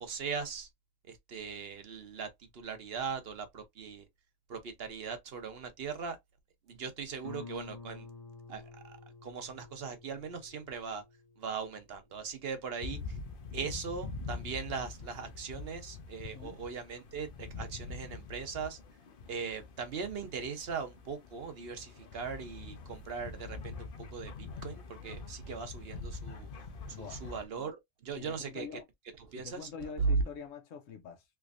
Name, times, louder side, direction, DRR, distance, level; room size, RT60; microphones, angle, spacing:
voice 1, 0.0-0.7 1.1-2.3 2.5-4.0 4.5-6.2 6.7-8.1 8.5-9.0 9.2-11.0 11.4-13.0 13.5-18.8 19.3-23.9 24.1-24.3 24.6-26.5 27.0-28.7 29.3-30.2, right 5 dB, 55° right, 0.9 m, -39 dB
Guitar, 7.2-12.6, left 3 dB, 30° left, 1.2 m, -51 dB
sound 1, 12.8-27.4, left 4 dB, 50° left, 0.8 m, -44 dB
voice 2, 28.2-28.8 29.4-31.2, left 6 dB, 80° left, 1.1 m, -45 dB
3.4 x 3.1 x 2.4 m
omnidirectional pair, 1.3 m